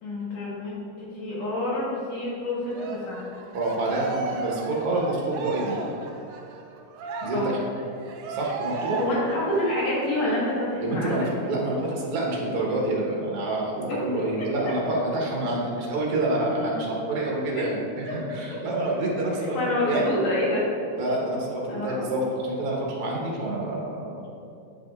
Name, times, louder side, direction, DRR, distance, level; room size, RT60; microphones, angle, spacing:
voice 1, 0.0-3.2 7.3-7.5 9.0-11.3 13.9-14.7 17.5-17.7 18.1-18.2 18.5-18.6 19.5-20.6 21.7-22.1, left 1 dB, 65° left, -7 dB, 2.6 m, -28 dB
Cheering, 2.7-10.7 11.1-11.2 11.6-12.6, right 4 dB, 75° right, 1.6 m, -36 dB
voice 2, 3.5-5.8 7.2-7.6 8.3-9.0 10.8-19.6 19.8-20.0 21.0-24.3, right 2 dB, 60° right, -3 dB, 1.8 m, -27 dB
9.0 x 5.0 x 2.4 m, 2.5 s
omnidirectional pair, 3.4 m